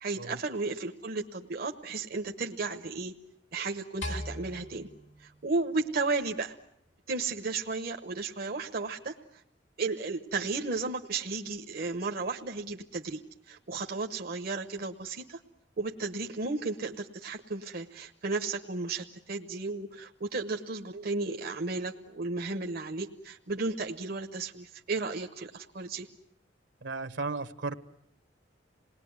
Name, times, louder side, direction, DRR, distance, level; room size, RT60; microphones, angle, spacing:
voice 1, 0.0-3.1 3.5-4.9 5.2-6.6 7.1-9.2 9.8-13.2 13.5-15.4 15.8-26.1, right 3 dB, 55° right, 4 dB, 1.0 m, -34 dB
sound 1, 4.0-6.4, left 1 dB, 85° left, 3.0 m, -41 dB
voice 2, 26.8-27.8, right 3 dB, 70° right, 10 dB, 1.3 m, -35 dB
27.5 x 19.5 x 9.5 m, 0.76 s
head